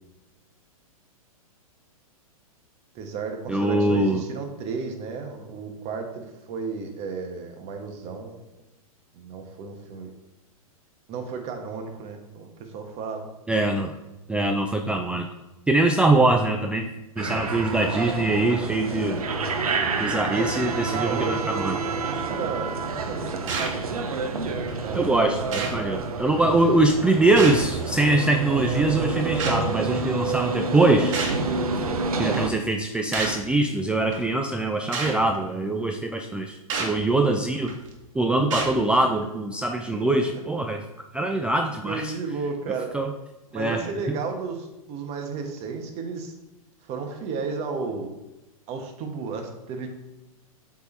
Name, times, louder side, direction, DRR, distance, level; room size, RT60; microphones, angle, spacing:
voice 1, 2.9-8.4 9.1-10.1 11.1-13.3 20.3-20.6 20.9-23.8 24.8-25.1 26.4-27.0 39.9-40.2 41.8-42.9 43.5-46.3 46.8-48.1 48.7-49.9, right 5 dB, 35° right, 4 dB, 1.3 m, -33 dB
voice 2, 3.5-4.2 13.5-14.0 14.3-15.3 15.7-19.2 20.0-21.7 24.9-31.2 32.2-37.7 38.1-40.8 41.1-42.1 42.9-43.1 43.5-44.2, right 2 dB, 5° right, 4 dB, 0.3 m, -23 dB
sound 1, 17.2-32.5, right 3 dB, 80° right, 0.8 m, -28 dB
sound 2, 23.5-23.8 24.7-24.8 25.5-25.8 27.4-27.8 29.4-29.6 31.1-31.4 32.3-32.5 33.1-33.4 34.1-34.2 34.9-35.2 36.7-37.0 37.7-37.9 38.5-38.8, right 4 dB, 60° right, 1.6 m, -29 dB
8.0 x 3.7 x 4.5 m, 1.0 s
hypercardioid pair, 110°, 19 cm